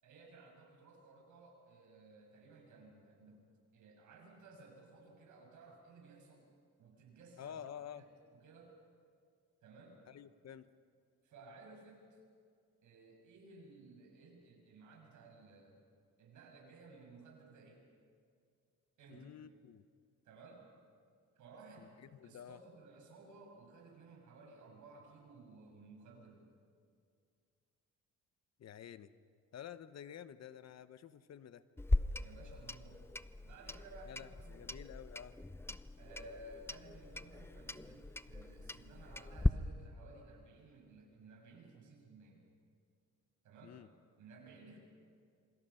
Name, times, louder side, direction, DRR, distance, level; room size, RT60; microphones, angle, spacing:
voice 1, 0.0-6.5 6.8-7.6 7.9-8.1 8.4-8.7 9.6-10.0 11.2-12.2 12.8-15.8 16.2-17.9 19.0-19.3 20.2-20.6 21.4-22.0 22.2-26.5 32.2-33.1 33.4-34.7 36.0-42.5 43.4-43.7 44.2-44.8, right 3 dB, 75° right, 1 dB, 6.9 m, -57 dB
voice 2, 7.4-8.0 10.1-10.7 19.1-19.9 21.8-22.6 28.6-29.1 29.5-31.6 34.0-35.4 43.6-43.9, left 9 dB, 60° left, 13 dB, 1.0 m, -50 dB
Clock, 31.8-39.5, left 2 dB, 10° left, 0.6 m, -38 dB
27.0 x 25.5 x 5.8 m, 2.2 s
cardioid pair, 90°, 30 cm